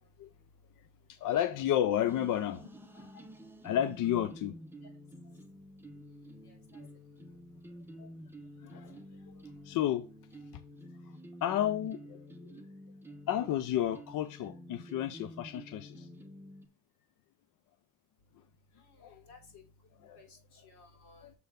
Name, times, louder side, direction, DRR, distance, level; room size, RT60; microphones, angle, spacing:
voice 1, 1.1-2.7 2.9-3.2 3.6-4.6 8.0-8.1 8.6-9.0 9.6-10.1 11.4-12.6 13.3-16.1 19.0-19.2 20.0-20.2 21.2-21.3, left 11 dB, 50° left, 0.6 m, -32 dB
sound 1, 2.0-16.7, equal, 5° right, 0.8 m, -50 dB
voice 2, 6.5-6.8 19.0-19.6 20.1-21.3, left 4 dB, 65° left, 3.6 m, -57 dB
6.9 x 4.3 x 5.1 m
supercardioid pair, 95°, 44 cm